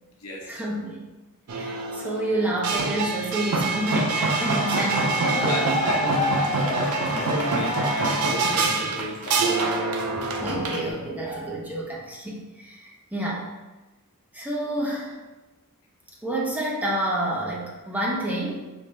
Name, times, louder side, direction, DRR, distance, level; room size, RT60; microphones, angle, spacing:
voice 1, 0.5-1.0 1.5-5.6 9.6-9.8 10.1-13.5 14.3-15.1 16.2-18.6, right 1 dB, 5° right, -5 dB, 0.8 m, -29 dB
Sanchon Drum - Seoul Korea, 1.5-10.9, right 3 dB, 75° right, 0.5 m, -26 dB
sound 1, 3.8-8.8, left 2 dB, 35° left, 0.8 m, -30 dB
voice 2, 5.2-9.6, left 1 dB, 70° left, -2 dB, 1.0 m, -32 dB
5.2 x 2.8 x 3.2 m, 1.1 s
head